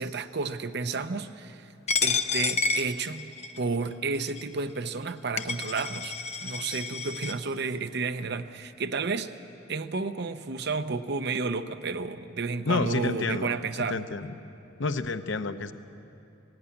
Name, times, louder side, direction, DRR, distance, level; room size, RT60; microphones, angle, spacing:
voice 1, 0.0-1.7 2.0-6.2 6.4-9.3 9.7-14.0, right 4 dB, 60° right, 10 dB, 0.8 m, -31 dB
Coin (dropping), 1.9-3.6 4.3-4.4 5.1-5.2 5.4-7.3, left 5 dB, 35° left, 0.8 m, -29 dB
voice 2, 12.7-13.6 13.9-14.3 14.8-15.7, left 3 dB, 65° left, 10 dB, 0.8 m, -29 dB
18.0 x 16.0 x 9.7 m, 2.7 s
head